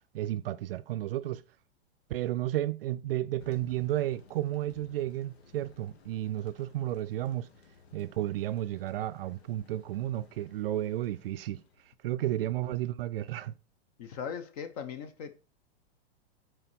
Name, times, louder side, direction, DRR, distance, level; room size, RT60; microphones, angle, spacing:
voice 1, 0.1-1.4 2.1-7.5 7.9-11.6 12.0-13.5, right 14 dB, 65° right, 0.5 m, -32 dB
Thunder, 3.4-11.9, left 4 dB, 80° left, 1.9 m, -57 dB
voice 2, 14.0-15.4, left 7 dB, 35° left, 0.9 m, -39 dB
6.8 x 4.5 x 5.9 m
supercardioid pair, 175°, 32 cm